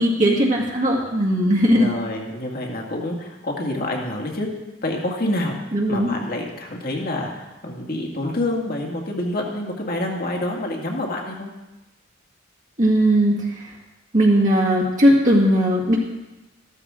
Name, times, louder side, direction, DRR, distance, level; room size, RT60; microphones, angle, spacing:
voice 1, 0.0-1.9 5.7-6.1 12.8-13.7 14.1-16.0, equal, 40° right, -3 dB, 2.0 m, -18 dB
voice 2, 1.7-4.5 4.8-11.5, left 1 dB, 50° left, 1 dB, 2.1 m, -27 dB
14.0 x 13.0 x 3.8 m, 1.0 s
head